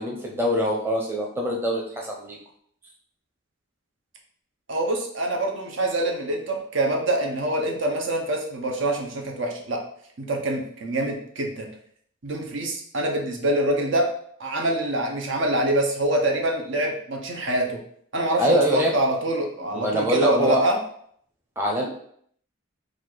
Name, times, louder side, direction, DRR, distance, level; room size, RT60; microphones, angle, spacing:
voice 1, 0.0-2.4 18.4-18.9 19.7-20.6 21.6-21.8, equal, 10° right, -2 dB, 0.7 m, -24 dB
voice 2, 4.7-9.8 10.2-11.7 12.2-14.1 14.4-17.8 18.1-20.8, right 1 dB, 70° right, 1 dB, 0.9 m, -25 dB
4.3 x 2.5 x 4.5 m, 0.64 s
head